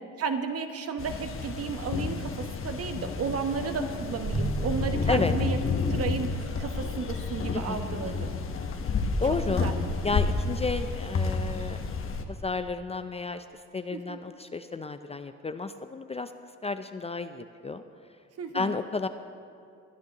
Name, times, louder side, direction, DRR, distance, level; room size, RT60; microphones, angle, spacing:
voice 1, 0.2-5.6 5.9-8.3 9.3-9.7 13.9-14.2 18.4-18.8, right 5 dB, 50° right, 7 dB, 1.0 m, -33 dB
sound 1, 1.0-12.2, left 4 dB, 45° left, 1.0 m, -30 dB
sound 2, 4.2-6.5, right 2 dB, 20° right, 1.5 m, -33 dB
voice 2, 7.5-8.2 9.2-9.7 10.0-11.8 12.3-13.4 13.7-16.3 16.6-17.8 18.5-19.1, left 3 dB, 20° left, 9 dB, 0.4 m, -32 dB
21.5 x 10.5 x 2.9 m, 2.5 s
cardioid pair, 90°, 30 cm